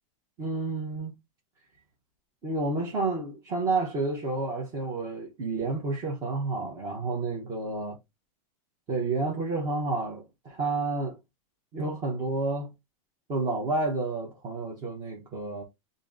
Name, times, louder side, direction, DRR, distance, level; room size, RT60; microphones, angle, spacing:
voice 1, 0.4-1.2 2.4-8.0 8.9-11.2 11.7-12.7 13.3-15.6, right 3 dB, 20° right, 0.8 m, -30 dB
3.5 x 2.6 x 3.7 m
supercardioid pair, 175°, 18 cm